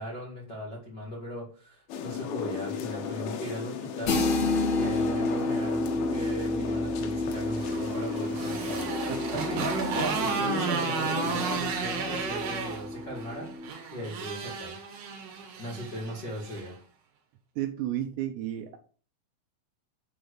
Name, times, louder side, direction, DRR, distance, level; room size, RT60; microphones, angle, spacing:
voice 1, 0.0-4.2 4.7-14.8 15.3-16.7, equal, 40° left, 1.6 m, -38 dB
sound 1, 1.9-11.6, left 6 dB, 90° left, 3.7 m, -36 dB
sound 2, 4.1-13.7, left 2 dB, 75° left, 1.6 m, -31 dB
Motorcycle, 7.3-16.7, right 5 dB, 60° right, 3.1 m, -34 dB
voice 2, 17.6-18.8, right 12 dB, 80° right, 2.7 m, -32 dB
7.9 x 3.7 x 6.6 m
omnidirectional pair, 5.5 m